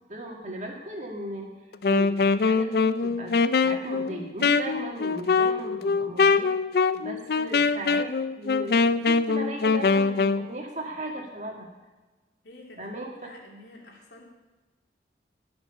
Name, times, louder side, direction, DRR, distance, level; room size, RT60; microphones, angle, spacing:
voice 1, 0.1-1.5 1.9-3.4 3.6-6.5 6.9-11.7 12.8-13.1, right 1 dB, 40° right, 0 dB, 2.2 m, -37 dB
Wind instrument woodwind instrument, 1.7-10.5, left 4 dB, 55° left, 0.4 m, -23 dB
voice 2, 12.4-12.9 13.2-14.3, left 2 dB, 75° left, -1 dB, 2.8 m, -48 dB
18.5 x 6.1 x 5.6 m, 1.2 s
head